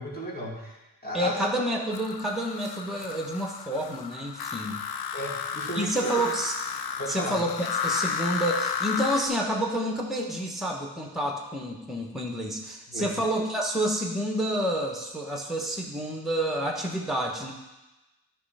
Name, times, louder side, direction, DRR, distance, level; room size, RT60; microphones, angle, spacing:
voice 1, 0.0-1.4 5.1-6.1 7.0-7.4 12.9-13.2, equal, 20° left, -3 dB, 2.3 m, -35 dB
voice 2, 1.1-4.8 5.7-6.5 7.1-7.5 7.8-17.5, right 1 dB, ahead, 0 dB, 1.2 m, -29 dB
sound 1, 1.9-9.3, left 7 dB, 60° left, 0.6 m, -33 dB
9.5 x 3.4 x 5.6 m, 1.0 s
cardioid pair, 40°, 41 cm